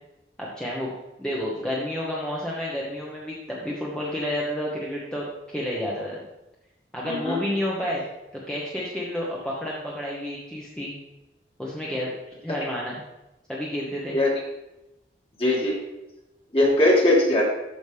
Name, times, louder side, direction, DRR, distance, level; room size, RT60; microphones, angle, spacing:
voice 1, 0.4-0.9 1.2-6.2 6.9-8.0 8.5-10.9 11.6-12.1 12.4-13.0 13.5-14.2, left 1 dB, 5° left, -5 dB, 1.1 m, -30 dB
voice 2, 7.0-7.4 12.5-12.6 14.1-14.3 15.4-15.8 16.5-17.5, left 1 dB, 30° left, -4 dB, 2.3 m, -20 dB
13.5 x 5.1 x 3.4 m, 0.96 s
head